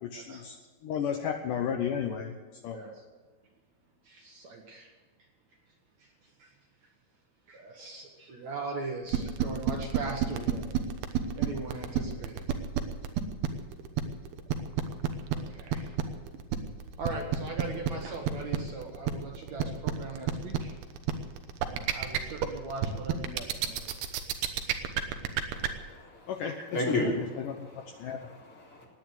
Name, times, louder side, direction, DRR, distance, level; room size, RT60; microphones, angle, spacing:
voice 1, 0.0-0.6 0.8-2.3 2.6-2.8 26.3-27.7 28.0-28.2, left 7 dB, 70° left, 4 dB, 2.2 m, -33 dB
voice 2, 2.7-3.0 4.0-4.9 6.0-6.1 6.4-6.5 7.5-10.8 11.4-12.6 15.3-15.9 17.0-20.7 21.6-23.9, right 3 dB, 55° right, 1 dB, 2.3 m, -40 dB
sound 1, 9.1-25.7, right 10 dB, 90° right, 3.0 m, -29 dB
voice 3, 25.5-26.3 26.7-27.1 27.5-28.9, left 2 dB, 35° left, -3 dB, 4.3 m, -34 dB
17.5 x 9.9 x 8.2 m, 1.3 s
omnidirectional pair, 4.4 m